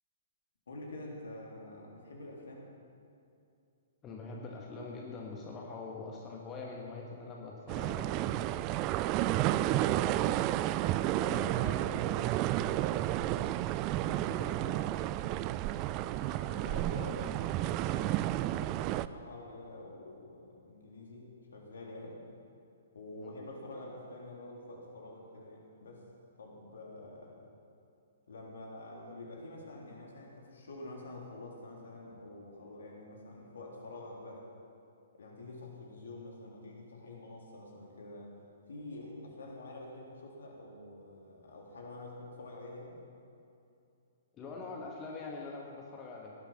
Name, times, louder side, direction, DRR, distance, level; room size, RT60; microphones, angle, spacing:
voice 1, 0.7-2.7 16.0-22.2 22.9-26.1 26.4-27.5 28.3-34.5 35.1-38.4 38.7-43.0, left 2 dB, 65° left, -1 dB, 3.5 m, -47 dB
voice 2, 4.0-8.6 9.3-10.5 11.2-13.3 13.9-14.8 23.2-23.3 44.3-46.3, left 3 dB, 20° left, -1 dB, 1.8 m, -44 dB
sound 1, 7.7-19.1, right 14 dB, 30° right, 0.4 m, -31 dB
17.5 x 11.5 x 5.8 m, 2.6 s
figure-of-eight pair, 120°, 0 cm